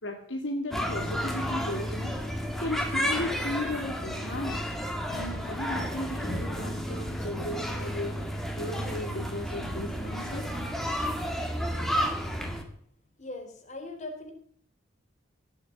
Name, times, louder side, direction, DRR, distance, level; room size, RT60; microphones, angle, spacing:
voice 1, 0.0-2.2 2.6-4.8 5.1-8.2 8.6-10.5, left 1 dB, 75° left, 2 dB, 2.3 m, -35 dB
sound 1, 0.7-12.6, equal, ahead, 2.3 m, -32 dB
voice 2, 13.2-14.3, left 2 dB, 40° left, 4 dB, 3.7 m, -40 dB
18.0 x 8.0 x 8.5 m, 0.63 s
head